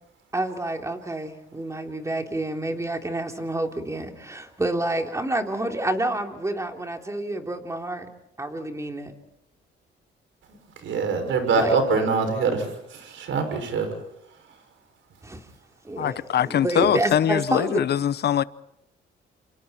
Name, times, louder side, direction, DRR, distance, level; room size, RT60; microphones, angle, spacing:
voice 1, 0.3-8.1 8.4-9.1 11.6-11.8 15.2-15.4 15.8-17.8, right 1 dB, 15° right, 3.3 m, -28 dB
voice 2, 10.8-13.9, right 4 dB, 75° right, 6.2 m, -24 dB
voice 3, 16.0-18.4, left 10 dB, 55° left, 0.9 m, -22 dB
29.0 x 27.5 x 4.4 m
cardioid pair, 90°, 20 cm